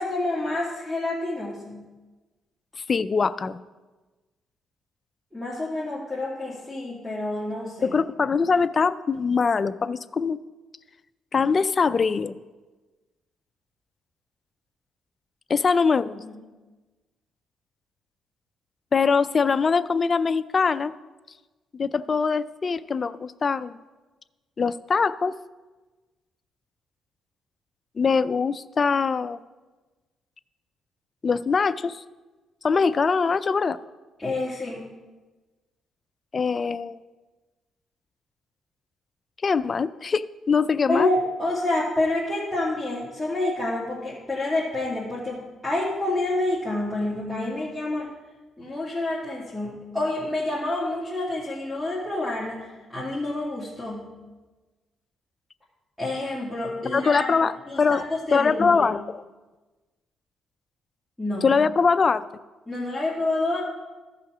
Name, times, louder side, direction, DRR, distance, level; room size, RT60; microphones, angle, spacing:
voice 1, 0.0-1.8 5.3-7.9 16.2-16.3 34.2-34.8 40.9-48.1 48.6-54.1 56.0-57.3 57.7-58.9 61.2-61.5 62.7-63.6, left 2 dB, 5° left, -8 dB, 2.2 m, -28 dB
voice 2, 2.9-3.6 7.8-10.4 11.3-12.4 15.5-16.2 18.9-20.9 21.7-23.8 24.6-25.3 28.0-29.4 31.2-32.0 32.6-33.8 36.3-37.0 39.4-41.1 56.9-58.0 58.3-59.0 61.4-62.2, left 5 dB, 40° left, 14 dB, 0.4 m, -22 dB
14.0 x 5.8 x 4.9 m, 1.2 s
cardioid pair, 90°, 0 cm